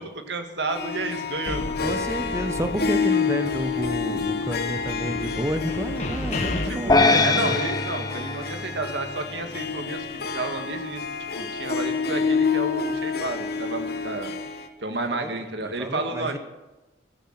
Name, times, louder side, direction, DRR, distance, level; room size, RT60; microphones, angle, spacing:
voice 1, 0.0-2.0 6.6-11.1 11.4-14.3 14.8-16.4, right 2 dB, 75° right, 6 dB, 1.9 m, -31 dB
Harp, 0.7-14.7, left 5 dB, 60° left, 1.3 m, -28 dB
sound 1, 1.5-3.1 3.4-6.6, left 1 dB, 40° left, 2.1 m, -34 dB
voice 2, 1.8-7.6 14.9-15.3 15.6-16.4, right 1 dB, 15° right, 8 dB, 1.0 m, -30 dB
sound 2, 6.9-9.4, left 3 dB, 20° left, 1.1 m, -22 dB
15.5 x 13.0 x 6.0 m, 1.1 s
head